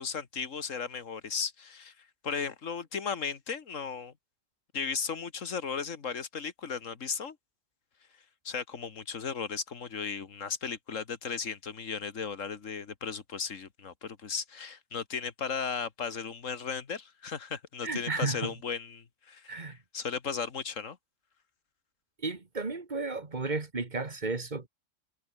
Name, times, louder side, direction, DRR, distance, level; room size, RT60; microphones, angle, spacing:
voice 1, 0.0-4.1 4.7-7.4 8.5-21.0, left 6 dB, 80° left, 2.0 m, -36 dB
voice 2, 17.8-18.5 19.5-19.8 22.2-24.7, right 3 dB, 35° right, 2.1 m, -33 dB
omnidirectional pair, 1.3 m